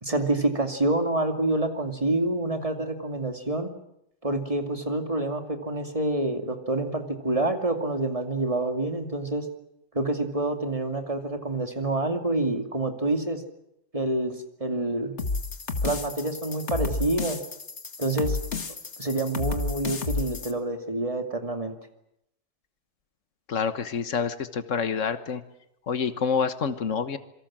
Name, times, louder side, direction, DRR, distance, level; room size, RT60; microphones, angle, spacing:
voice 1, 0.0-3.7 4.2-9.5 9.9-13.4 13.9-15.1 15.8-17.4 18.0-18.4 19.0-21.7, right 2 dB, 25° right, 5 dB, 2.6 m, -27 dB
sound 1, 15.2-20.5, left 3 dB, 65° left, 2.0 m, -31 dB
voice 2, 23.5-25.4 25.9-27.2, left 6 dB, 80° left, 11 dB, 1.7 m, -27 dB
27.0 x 23.5 x 7.5 m, 0.80 s
omnidirectional pair, 1.3 m